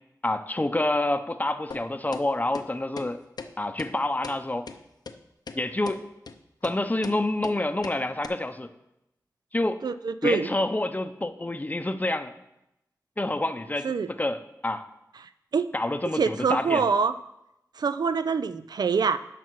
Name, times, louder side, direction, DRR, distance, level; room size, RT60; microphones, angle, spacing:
voice 1, 0.2-3.2 3.6-4.7 5.5-6.0 6.6-8.7 9.5-9.8 10.2-12.3 13.2-14.9 15.7-16.8, left 2 dB, 25° left, 10 dB, 0.6 m, -28 dB
sound 1, 1.7-1.8 2.1-2.3 2.6-2.7 3.0-3.1 3.4-3.5 3.8-3.9 4.2-4.4 4.7-4.8 5.1-5.2 5.5-5.6 5.9-6.0 6.3-6.4 6.6-6.8 7.0-7.2 7.4-7.6 7.8-8.0 8.2-8.3, left 4 dB, 80° left, 0.6 m, -38 dB
voice 2, 9.8-10.5 13.8-14.1 15.5-15.7 16.1-17.1 17.8-19.2, right 5 dB, 85° right, 12 dB, 0.4 m, -25 dB
10.0 x 5.8 x 4.6 m, 0.87 s
wide cardioid pair, 65°, 7 cm